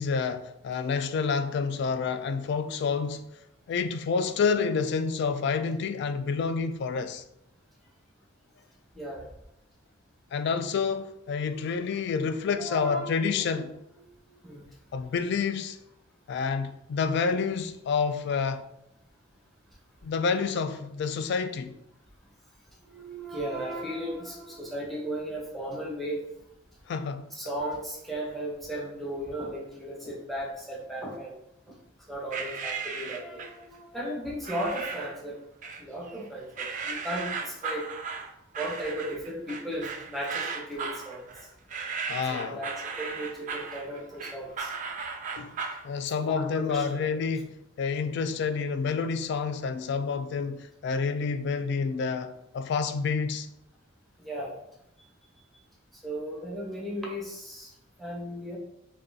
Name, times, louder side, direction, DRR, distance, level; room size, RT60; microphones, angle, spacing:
voice 1, 0.0-3.2 3.7-7.2 10.3-13.8 14.9-15.8 16.3-18.6 20.0-21.8 26.9-27.3 42.1-42.6 45.3-45.6 45.8-53.5, left 5 dB, 60° left, 0.3 m, -28 dB
voice 2, 8.9-9.3 11.4-12.0 12.6-13.2 14.2-14.6 22.8-26.2 27.3-31.4 31.7-31.8 32.1-35.4 35.8-37.9 38.6-41.2 42.3-44.8 46.2-47.0 54.2-54.6 55.9-57.7 58.0-58.6, right 1 dB, ahead, 0.8 m, -36 dB
sound 1, 32.3-33.6 34.4-35.2 35.6-36.2 36.6-45.8, right 5 dB, 40° right, 0.4 m, -36 dB
5.1 x 2.3 x 2.7 m
head